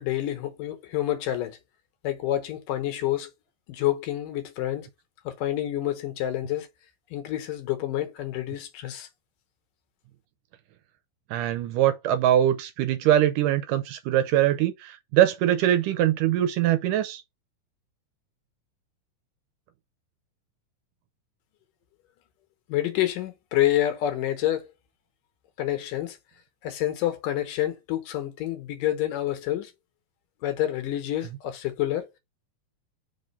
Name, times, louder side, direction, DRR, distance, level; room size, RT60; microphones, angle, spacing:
voice 1, 0.0-1.6 2.0-3.3 3.7-4.9 5.3-6.7 7.1-9.1 22.7-24.7 25.6-26.2 26.6-29.7 30.4-32.2, left 13 dB, 75° left, 2.5 m, -28 dB
voice 2, 11.3-17.2, right 12 dB, 80° right, 2.1 m, -22 dB
5.1 x 3.8 x 5.3 m
omnidirectional pair, 4.0 m